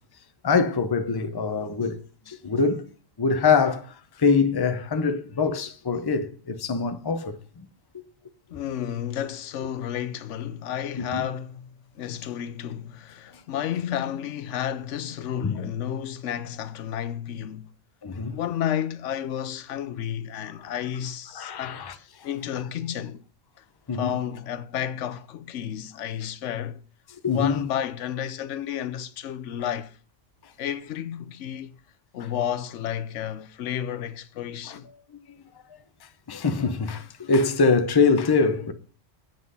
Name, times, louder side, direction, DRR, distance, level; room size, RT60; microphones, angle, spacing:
voice 1, 0.4-2.0 2.3-2.8 3.2-3.9 4.2-7.4 11.0-11.2 15.4-15.7 18.0-18.4 21.4-21.9 23.9-24.1 27.2-27.6 36.3-38.7, left 4 dB, 25° left, 0.6 m, -23 dB
voice 2, 8.5-17.7 18.3-21.8 22.2-23.2 23.9-26.8 27.2-30.0 30.6-31.7 32.1-34.9, left 10 dB, 70° left, 1.0 m, -31 dB
8.0 x 6.2 x 5.4 m
omnidirectional pair, 1.3 m